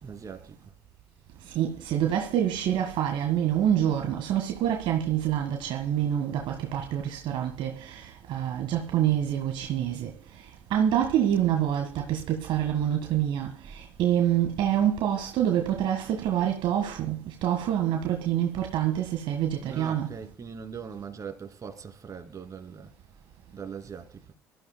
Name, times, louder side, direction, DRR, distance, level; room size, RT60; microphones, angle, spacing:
voice 1, 0.0-0.6 19.5-22.9 23.5-24.2, right 6 dB, 35° right, 2.8 m, -41 dB
voice 2, 1.5-8.0 8.3-10.1 10.7-20.1, right 10 dB, 60° right, 1.7 m, -26 dB
24.0 x 13.5 x 2.3 m
hypercardioid pair, 60°, 9 cm